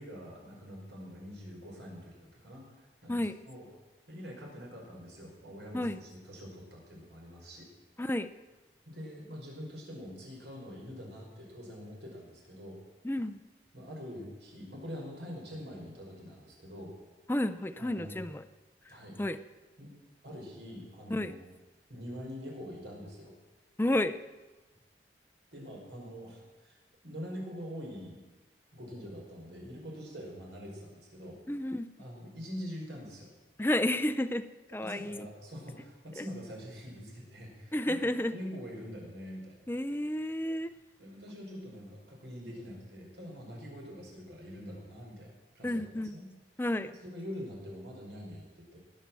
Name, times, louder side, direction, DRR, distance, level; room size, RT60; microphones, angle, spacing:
voice 1, 0.0-3.7 4.1-7.7 8.9-12.8 13.7-16.9 17.8-18.2 18.9-19.2 19.8-19.9 20.2-21.5 21.9-23.3 25.5-26.8 27.0-28.2 28.7-31.4 32.0-33.3 34.8-39.7 41.0-45.8 46.1-46.3 46.9-48.8, equal, 80° right, -1 dB, 5.6 m, -44 dB
voice 2, 13.0-13.4 17.3-18.4 18.9-19.4 21.1-21.3 23.8-24.2 31.5-31.9 33.6-34.4 34.7-35.3 36.2-36.3 37.7-38.3 39.7-40.7 45.6-46.1 46.6-46.9, left 1 dB, 10° left, 10 dB, 0.5 m, -31 dB
18.5 x 9.6 x 7.5 m, 1.2 s
head